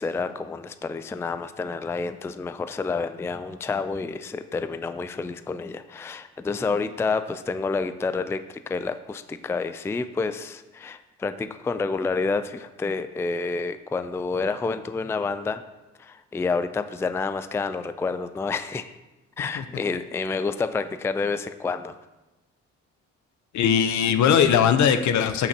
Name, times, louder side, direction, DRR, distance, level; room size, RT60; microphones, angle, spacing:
voice 1, 0.0-15.6 16.0-18.9 19.4-22.0, left 4 dB, 10° left, 11 dB, 0.3 m, -29 dB
voice 2, 23.5-25.5, left 8 dB, 70° left, 10 dB, 0.7 m, -20 dB
13.0 x 5.9 x 2.8 m, 1.1 s
cardioid pair, 90°, 30 cm